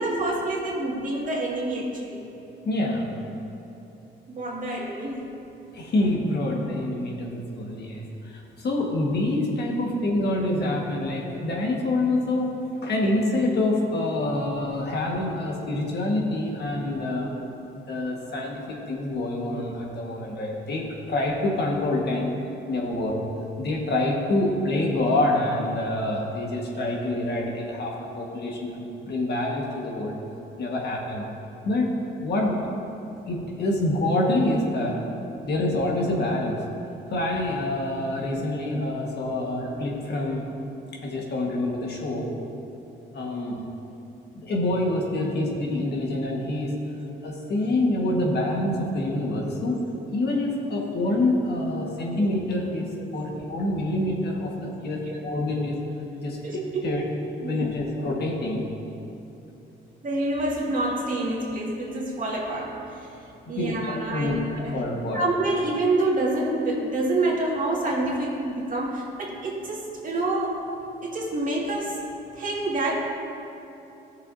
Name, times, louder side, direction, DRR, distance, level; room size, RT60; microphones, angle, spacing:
voice 1, 0.0-2.3 4.3-5.3 16.8-17.0 32.5-32.6 39.4-39.5 42.2-42.3 45.3-45.5 52.1-52.3 53.3-53.4 55.1-55.2 56.4-56.8 57.4-57.7 60.0-63.2 63.5-64.8 65.1-70.6 71.0-72.0 72.3-73.1, right 2 dB, 40° right, -3 dB, 2.1 m, -27 dB
voice 2, 2.6-3.1 5.7-12.5 12.8-17.3 17.8-20.8 21.1-22.3 22.7-23.1 23.6-30.2 30.6-31.3 31.6-32.6 33.2-35.0 35.4-36.6 37.1-40.4 41.0-42.3 43.1-43.6 44.3-46.7 47.2-49.8 50.1-52.9 53.1-55.7 56.2-56.4 56.8-57.0 57.4-58.6 63.6-64.4 64.7-65.2, left 1 dB, 55° left, -1 dB, 1.6 m, -26 dB
14.5 x 6.7 x 2.7 m, 2.9 s
cardioid pair, 90°, 20 cm